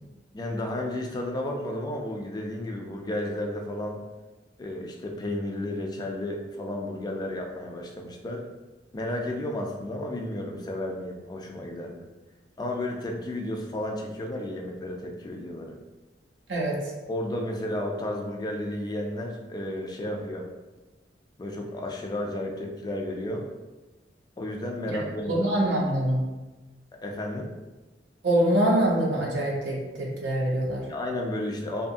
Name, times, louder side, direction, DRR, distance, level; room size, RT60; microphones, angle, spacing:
voice 1, 0.3-4.0 4.6-8.4 8.9-12.0 12.6-15.8 17.1-20.5 21.4-23.4 24.4-25.7 27.0-27.5 30.9-31.9, left 1 dB, 25° left, 1 dB, 0.3 m, -32 dB
voice 2, 25.3-26.2 28.2-30.9, right 1 dB, 80° right, -3 dB, 0.5 m, -24 dB
2.7 x 2.3 x 2.5 m, 1.1 s
head